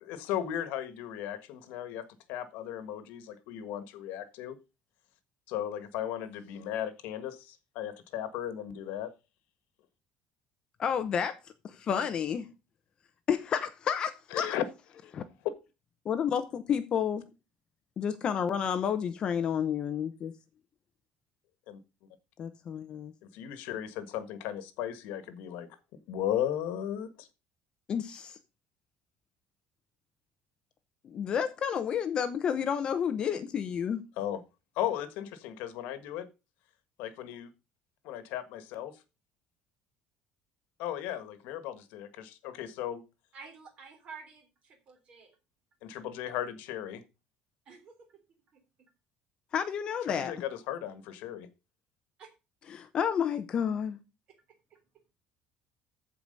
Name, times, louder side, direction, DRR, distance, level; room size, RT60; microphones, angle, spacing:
voice 1, 0.0-4.6 5.5-9.1 14.3-14.6 21.7-21.8 23.3-25.7 26.1-27.3 34.2-34.4 34.8-36.3 37.0-37.5 38.0-39.0 40.8-43.0 45.8-47.0 50.2-51.5, left 11 dB, 80° left, 1.5 m, -36 dB
voice 2, 10.8-11.3 11.6-12.5 13.3-14.6 15.1-15.2 16.0-17.2 18.0-20.3 22.4-23.1 27.9-28.4 31.0-34.0 49.5-50.3 52.7-54.0, left 8 dB, 30° left, 0.8 m, -30 dB
voice 3, 43.3-45.4 47.7-48.6 52.2-52.3 54.7-54.8, right 5 dB, 40° right, 3.6 m, -51 dB
14.5 x 4.9 x 5.3 m
cardioid pair, 180°, 3 cm